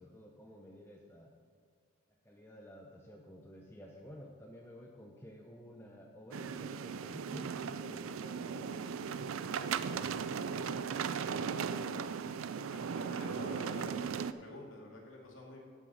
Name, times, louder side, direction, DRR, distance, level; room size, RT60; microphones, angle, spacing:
voice 1, 0.0-1.3 2.1-8.8 13.3-13.5 13.8-14.2, equal, 10° left, 0 dB, 0.7 m, -52 dB
sound 1, 6.3-14.3, right 6 dB, 90° right, 0.4 m, -37 dB
voice 2, 10.3-10.9 11.2-11.6 12.7-15.6, left 1 dB, 85° left, -2 dB, 2.5 m, -49 dB
14.5 x 6.0 x 4.1 m, 2.1 s
head